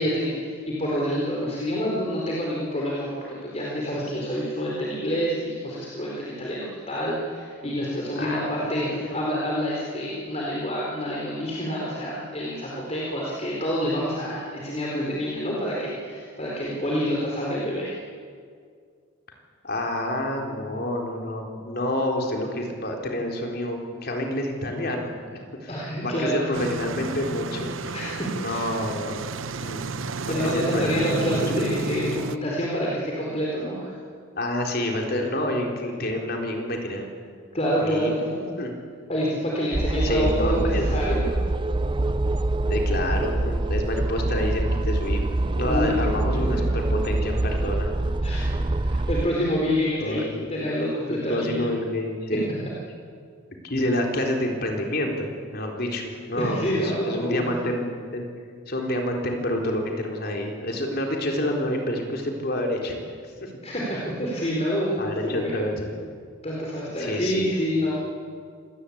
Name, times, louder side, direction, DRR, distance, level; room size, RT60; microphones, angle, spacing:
voice 1, 0.0-18.0 25.7-26.5 27.9-28.7 30.3-33.9 37.5-38.5 39.1-41.3 45.7-46.0 48.2-51.6 56.4-57.5 63.6-65.5 66.4-67.9, equal, 30° left, -4 dB, 4.4 m, -27 dB
voice 2, 8.2-9.2 19.6-25.7 26.0-28.0 28.3-29.2 29.6-29.8 30.2-31.4 34.4-37.1 37.7-38.1 38.6-38.8 40.0-40.9 42.7-47.9 48.5-48.7 50.0-50.5 51.1-52.6 53.6-58.2 58.7-62.9 63.2-63.5 65.0-66.0 67.0-67.5, left 1 dB, 45° left, 1 dB, 4.0 m, -28 dB
sound 1, 26.5-32.4, right 4 dB, 70° right, 0.9 m, -31 dB
sound 2, 39.7-49.3, right 2 dB, 20° right, 0.6 m, -25 dB
26.5 x 20.0 x 8.7 m, 2.1 s
head